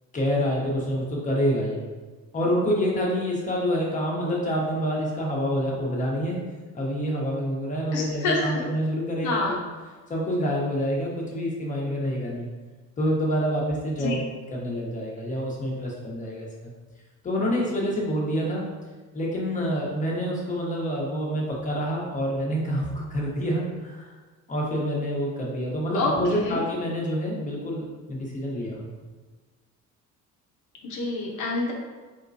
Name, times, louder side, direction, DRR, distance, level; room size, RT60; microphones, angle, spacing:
voice 1, 0.1-1.8 2.3-6.4 6.7-9.6 10.1-12.5 13.0-14.2 14.5-16.7 17.2-18.6 19.1-24.1 24.5-28.9, equal, 25° left, -3 dB, 1.0 m, -27 dB
voice 2, 7.9-8.6 9.2-9.6 14.0-14.1 25.9-26.7 30.8-31.7, left 2 dB, 70° left, -1 dB, 1.0 m, -27 dB
4.5 x 3.7 x 2.7 m, 1.3 s
cardioid pair, 140°, 31 cm